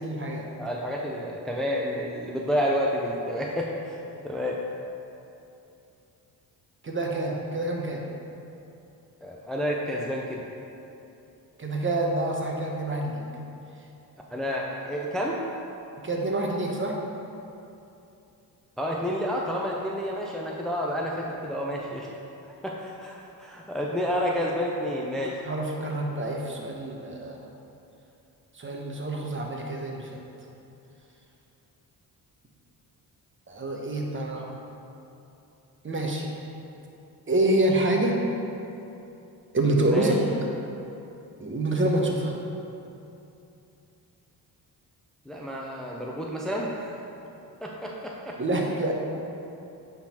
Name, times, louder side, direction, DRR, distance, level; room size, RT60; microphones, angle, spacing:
voice 1, 0.0-0.5 6.8-8.0 11.6-13.2 16.0-17.0 25.4-27.4 28.5-30.2 33.5-34.5 35.8-36.3 37.3-38.2 39.5-40.2 41.4-42.4 48.4-48.9, right 2 dB, 30° right, 0 dB, 1.1 m, -27 dB
voice 2, 0.6-4.0 4.2-4.6 9.2-10.4 14.3-15.4 18.8-22.1 22.5-25.4 39.8-40.1 45.3-46.9 47.6-48.4, equal, ahead, -2 dB, 0.6 m, -30 dB
8.5 x 3.9 x 4.4 m, 2.8 s
cardioid pair, 75°, 40 cm